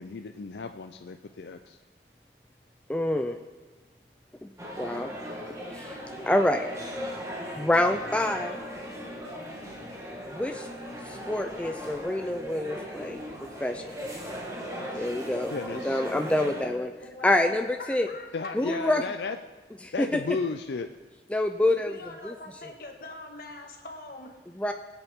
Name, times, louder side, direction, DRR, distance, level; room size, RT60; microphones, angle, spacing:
voice 1, 0.0-1.8 15.5-16.0 18.3-19.4 19.9-20.9, left 4 dB, 75° left, 7 dB, 0.5 m, -34 dB
voice 2, 2.9-3.4 4.4-4.5 4.8-5.2 5.7-6.0 6.3-6.7 7.6-8.6 10.3-10.7 11.1-13.2 13.6-13.8 15.0-16.9 17.2-18.1 18.5-19.0 19.8-20.2 21.3-22.0 22.2-22.3 24.6-24.7, left 1 dB, 5° left, 5 dB, 0.3 m, -27 dB
sound 1, 4.6-16.7, equal, 15° right, 1.3 m, -38 dB
voice 3, 17.0-18.8 21.7-24.7, left 2 dB, 55° left, 2 dB, 1.6 m, -44 dB
21.5 x 8.1 x 3.6 m, 1.3 s
head